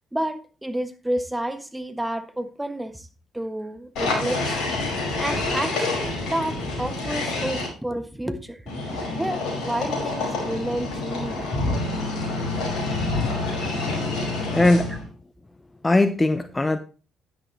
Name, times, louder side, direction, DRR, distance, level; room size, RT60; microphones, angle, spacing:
voice 1, 0.1-3.1 3.3-4.7 5.2-8.7 9.2-11.6 14.9-15.0, right 1 dB, 10° right, 1.5 m, -30 dB
sound 1, 4.0-7.7 8.7-15.1, left 2 dB, 65° left, 5.3 m, -27 dB
voice 2, 14.5-14.9 15.8-16.8, left 2 dB, 20° left, 0.8 m, -19 dB
10.5 x 10.5 x 3.1 m
hypercardioid pair, 50°, 0 cm